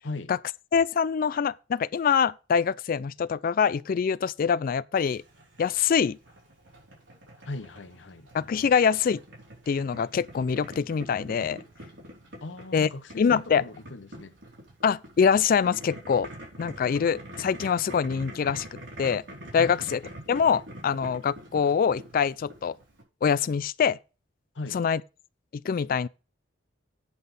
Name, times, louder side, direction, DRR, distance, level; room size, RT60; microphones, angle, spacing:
voice 1, 0.7-5.2 5.6-6.2 8.3-9.2 9.7-11.6 12.7-12.9 13.2-13.6 14.8-16.3 16.6-18.7 19.0-19.2 19.5-20.0 20.3-22.7 23.2-24.0 24.7-25.0 25.6-26.1, left 6 dB, 50° left, 0.3 m, -24 dB
Boiling, 4.9-23.0, right 1 dB, 90° right, 4.0 m, -45 dB
voice 2, 7.4-8.3 12.4-14.4 19.5-19.8 24.5-24.8, left 2 dB, 75° left, 0.8 m, -38 dB
8.3 x 5.9 x 5.3 m
head